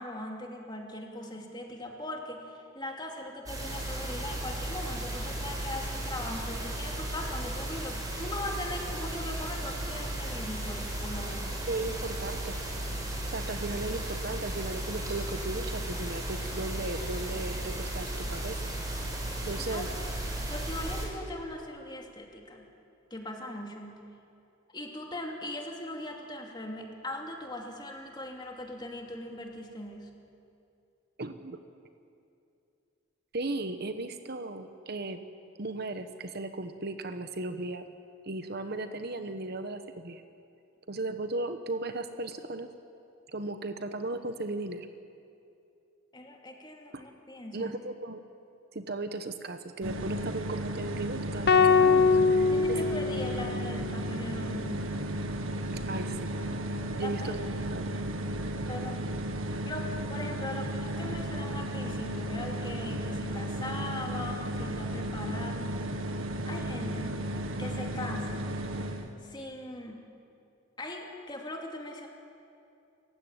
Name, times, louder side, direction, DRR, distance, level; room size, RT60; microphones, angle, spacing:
voice 1, 0.0-11.6 19.6-19.9 20.5-22.7 23.1-24.0 24.7-30.2 46.1-47.7 52.5-54.9 56.9-57.5 58.7-59.0 59.6-65.8 66.4-67.2 67.6-68.5 69.2-70.0 70.8-72.1, left 1 dB, 20° left, 1 dB, 2.7 m, -40 dB
sound 1, 3.5-21.1, right 1 dB, 20° right, 5.2 m, -35 dB
voice 2, 11.7-12.5 13.3-18.6 19.4-19.9 31.2-31.6 33.3-35.2 35.6-37.9 38.3-40.2 40.9-42.7 43.3-44.9 46.9-47.0 47.5-48.2 48.7-52.8 55.9-56.3 56.6-57.9, right 2 dB, 50° right, 8 dB, 1.1 m, -36 dB
sound 2, 49.8-69.1, right 1 dB, 85° right, 1.8 m, -34 dB
sound 3, 51.5-53.8, left 5 dB, 55° left, 0.8 m, -23 dB
28.5 x 15.5 x 9.0 m, 2.6 s
head